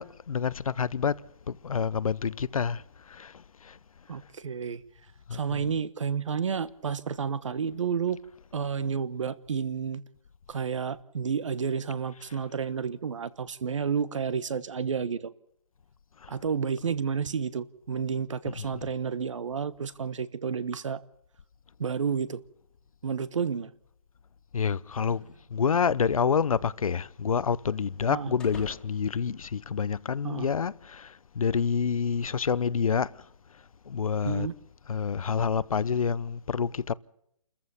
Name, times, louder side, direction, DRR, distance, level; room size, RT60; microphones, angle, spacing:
voice 1, 0.0-3.8 5.3-5.7 12.3-12.4 16.2-16.4 18.4-18.9 24.5-33.2 33.9-34.5 34.9-36.9, left 6 dB, 60° left, 0.7 m, -28 dB
voice 2, 4.1-4.8 5.3-8.2 8.5-10.0 10.5-15.2 16.3-21.0 21.8-22.4 23.0-23.7 28.1-28.3 30.2-30.5 34.2-34.5, right 6 dB, 50° right, 1.2 m, -30 dB
sound 1, 25.8-30.2, left 2 dB, 5° left, 2.3 m, -52 dB
28.5 x 14.5 x 7.0 m
hypercardioid pair, 170°, 20 cm